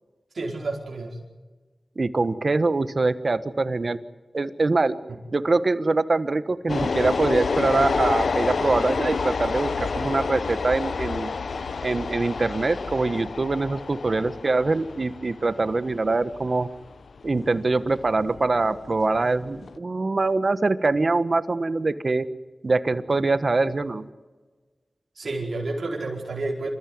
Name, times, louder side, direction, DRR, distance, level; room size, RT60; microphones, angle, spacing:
voice 1, 0.3-1.2 25.1-26.7, right 2 dB, 70° right, -2 dB, 4.8 m, -30 dB
voice 2, 2.0-4.0 4.3-5.0 5.3-11.3 11.8-16.7 17.2-22.2 22.6-24.1, right 3 dB, 55° right, 13 dB, 1.2 m, -23 dB
sound 1, 6.7-19.8, left 4 dB, 85° left, 1.0 m, -29 dB
27.0 x 14.0 x 9.5 m, 1.3 s
cardioid pair, 50°, 0 cm